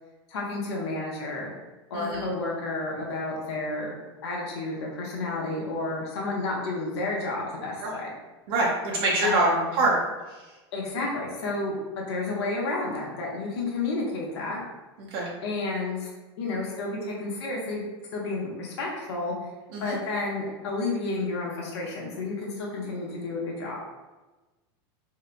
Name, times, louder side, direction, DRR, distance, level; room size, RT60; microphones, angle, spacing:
voice 1, 0.3-1.5 1.9-3.9 4.2-8.1 9.2-9.6 10.7-11.8 12.1-14.6 15.4-16.1 16.4-17.8 18.1-19.3 19.8-23.8, left 2 dB, 90° left, -3 dB, 0.6 m, -31 dB
voice 2, 1.9-2.3 7.8-7.9 8.5-9.5 9.8-10.0 15.0-15.3 19.7-19.9, right 2 dB, 60° right, -4 dB, 0.5 m, -25 dB
2.7 x 2.1 x 2.4 m, 1.2 s
supercardioid pair, 160°, 14 cm